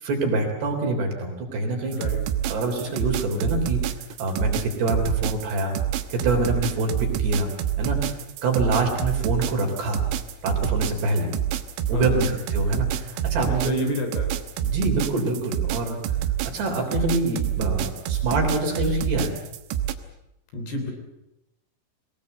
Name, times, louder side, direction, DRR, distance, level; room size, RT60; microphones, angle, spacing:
voice 1, 0.0-2.0 2.5-3.8 4.2-5.8 6.1-7.5 7.8-8.2 8.4-10.0 10.4-11.3 11.9-13.9 14.6-16.0 16.5-19.3, right 2 dB, 60° right, 2 dB, 5.4 m, -25 dB
voice 2, 1.9-2.2 11.9-12.3 13.6-14.3 20.5-20.9, left 3 dB, 55° left, 4 dB, 5.2 m, -30 dB
sound 1, 1.9-19.9, right 11 dB, 80° right, 3.6 m, -27 dB
22.5 x 19.5 x 8.1 m, 0.87 s
omnidirectional pair, 5.7 m